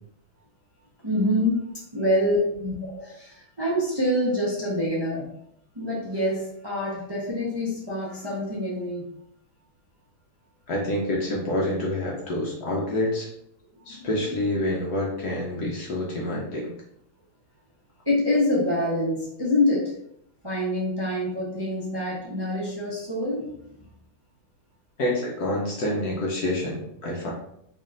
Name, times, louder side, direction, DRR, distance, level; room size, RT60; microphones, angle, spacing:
voice 1, 1.0-1.6 1.9-5.3 5.7-9.1 13.7-14.1 14.4-14.5 18.0-19.9 20.4-23.7, left 1 dB, 30° right, -7 dB, 0.5 m, -26 dB
voice 2, 10.7-13.3 13.9-16.7 25.0-27.3, left 1 dB, 65° left, -2 dB, 1.1 m, -27 dB
4.4 x 3.1 x 2.5 m, 0.72 s
omnidirectional pair, 2.2 m